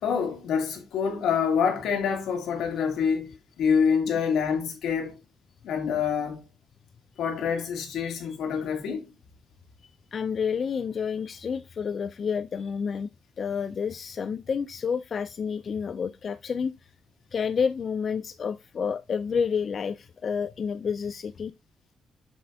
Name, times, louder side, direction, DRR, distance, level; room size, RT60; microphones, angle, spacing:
voice 1, 0.0-5.2 5.6-6.4 7.2-9.1, left 6 dB, 80° left, 2.2 m, -26 dB
voice 2, 10.1-13.1 13.4-16.9 17.3-21.5, left 6 dB, 40° left, 0.4 m, -29 dB
7.7 x 6.3 x 2.7 m
cardioid pair, 140°, 0 cm